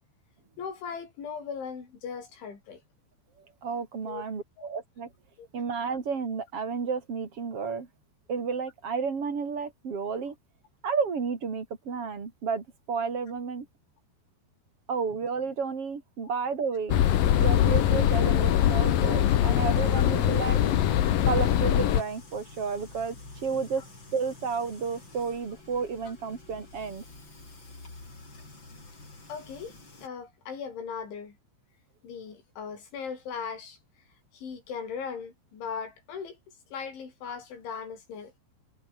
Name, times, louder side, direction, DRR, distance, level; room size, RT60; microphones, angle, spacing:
voice 1, 0.6-2.8 4.0-4.2 4.6-4.7 5.4-5.5 20.6-20.7 29.3-29.8 30.0-31.4 32.0-33.8 34.3-36.4 36.7-38.3, left 6 dB, 85° left, 7.9 m, -38 dB
voice 2, 3.6-5.1 5.5-7.9 8.3-10.4 10.8-13.7 14.9-17.0 17.4-20.6 21.2-23.2 23.4-23.8 24.1-27.0, right 5 dB, 35° right, 3.7 m, -31 dB
sound 1, 16.9-22.0, left 11 dB, 60° left, 2.8 m, -22 dB
sound 2, 17.0-30.1, left 3 dB, 25° left, 6.7 m, -48 dB
omnidirectional pair, 5.3 m